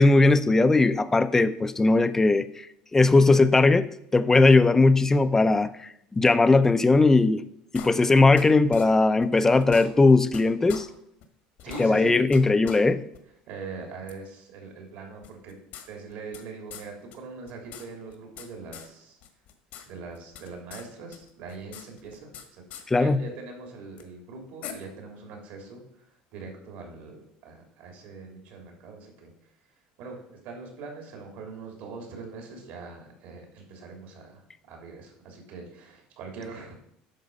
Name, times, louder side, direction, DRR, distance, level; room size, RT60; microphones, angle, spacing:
voice 1, 0.0-2.7 2.9-5.9 6.2-7.4 7.7-10.9 11.8-13.0 22.9-23.2, left 3 dB, 15° left, 0.6 m, -19 dB
sound 1, 7.7-8.4 8.7-8.8 9.2-9.3 9.6-10.4 10.7-10.8 11.2-11.3 11.6-12.4 12.6-12.8 13.1-13.2 14.1-14.2 15.2-16.4 16.7-16.8 17.1-17.2 17.5-18.5 18.7-18.9 19.2-19.8 20.1-20.8 21.1-22.4 22.7-22.8 24.0-24.1 24.6-24.7, left 9 dB, 65° left, 1.6 m, -42 dB
voice 2, 11.6-12.2 13.5-15.6 15.9-19.2 19.9-22.6 22.9-25.8 26.3-29.3 30.0-36.8, right 4 dB, 70° right, 3.1 m, -42 dB
9.3 x 6.1 x 5.4 m
supercardioid pair, 115°, 3 cm